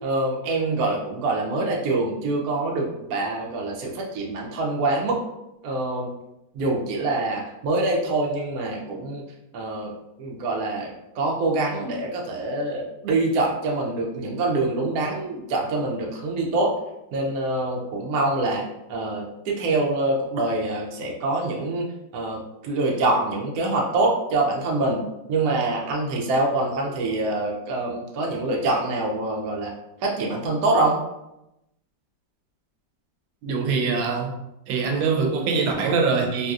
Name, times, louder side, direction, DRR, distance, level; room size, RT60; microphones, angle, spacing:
voice 1, 0.0-5.2 5.6-6.1 6.5-9.2 9.5-9.9 10.2-16.7 17.1-18.6 18.9-21.9 22.1-25.0 25.3-29.7 30.0-31.0, right 2 dB, 65° right, -1 dB, 0.9 m, -25 dB
voice 2, 33.4-34.3 34.7-36.5, right 4 dB, 85° right, 1 dB, 1.3 m, -23 dB
3.1 x 2.7 x 2.4 m, 0.88 s
omnidirectional pair, 2.1 m